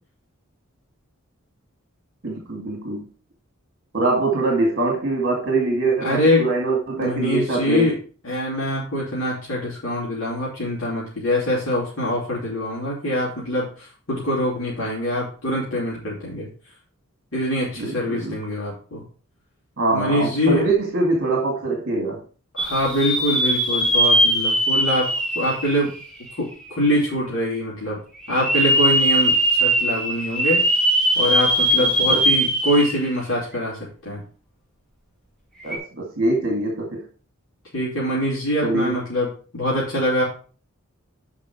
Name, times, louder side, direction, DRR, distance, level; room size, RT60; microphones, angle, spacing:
voice 1, 2.2-3.0 3.9-7.9 17.8-18.4 19.8-22.2 31.8-32.2 35.6-37.1 38.6-38.9, right 2 dB, 55° right, 2.2 m, -23 dB
voice 2, 6.0-6.5 7.0-7.9 8.2-16.5 17.3-19.0 19.9-20.7 22.5-25.9 26.4-28.0 28.3-30.6 31.1-34.2 37.7-40.2, left 1 dB, 70° left, 3.2 m, -24 dB
sound 1, 22.6-26.5 27.0-27.1 28.2-33.2 33.5-33.6 35.6-35.8, right 1 dB, 5° left, 2.5 m, -20 dB
7.7 x 5.8 x 4.7 m
head